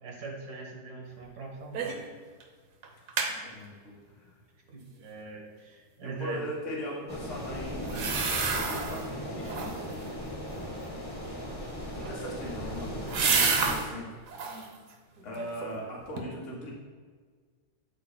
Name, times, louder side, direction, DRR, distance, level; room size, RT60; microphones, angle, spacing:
voice 1, 0.0-2.0 4.7-6.4, right 4 dB, 80° right, -1 dB, 1.8 m, -41 dB
sound 1, 1.7-2.1 2.4-2.5 2.8-3.3 7.8-9.0 9.4-9.9 11.9-13.9 14.3-14.7 15.2-15.8 16.2-16.3, right 5 dB, 65° right, 1.2 m, -30 dB
voice 2, 2.9-4.4 6.0-8.2 8.5-9.9 11.9-14.0 14.4-14.5 15.2-16.7, equal, 50° left, -3 dB, 1.8 m, -40 dB
sound 2, 7.1-13.8, equal, 20° left, 0.8 m, -37 dB
12.5 x 4.2 x 2.2 m, 1.5 s
omnidirectional pair, 1.6 m